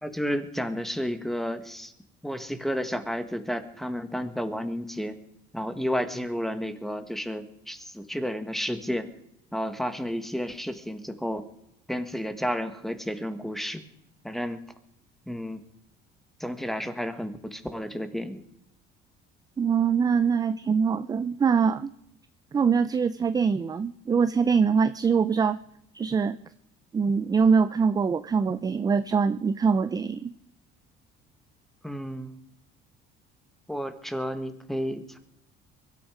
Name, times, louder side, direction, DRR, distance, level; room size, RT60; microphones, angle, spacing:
voice 1, 0.0-1.9 2.2-5.2 5.5-9.1 9.5-11.5 11.9-13.8 14.2-14.6 15.3-15.6 16.4-18.4 31.8-32.4 33.7-35.2, equal, ahead, 9 dB, 1.6 m, -31 dB
voice 2, 19.6-21.9 22.5-25.6 25.9-26.4 26.9-30.3, right 6 dB, 20° right, 12 dB, 0.5 m, -23 dB
23.0 x 12.5 x 5.0 m, 0.77 s
cardioid pair, 145°, 20 cm